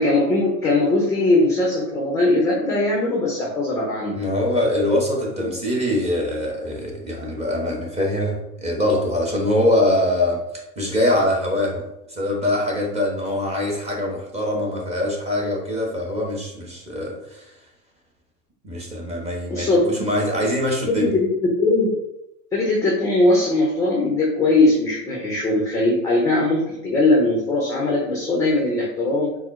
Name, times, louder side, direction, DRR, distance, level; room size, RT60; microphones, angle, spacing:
voice 1, 0.0-4.2 19.5-19.8 20.9-21.3 21.6-21.9 22.5-29.4, left 2 dB, 5° left, -3 dB, 0.5 m, -20 dB
voice 2, 4.1-17.4 18.6-21.1, left 1 dB, 15° right, -2 dB, 1.0 m, -23 dB
4.3 x 2.0 x 3.6 m, 0.86 s
hypercardioid pair, 105°, 48 cm